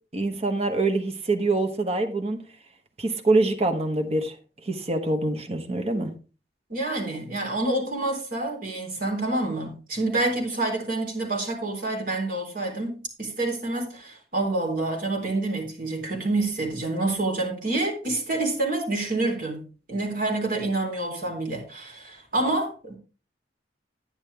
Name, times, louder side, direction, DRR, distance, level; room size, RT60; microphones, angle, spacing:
voice 1, 0.1-2.4 3.0-4.3 4.6-6.1, right 2 dB, 35° right, 1.1 m, -25 dB
voice 2, 6.7-23.0, right 2 dB, 55° right, 3.8 m, -28 dB
10.5 x 9.7 x 3.4 m
head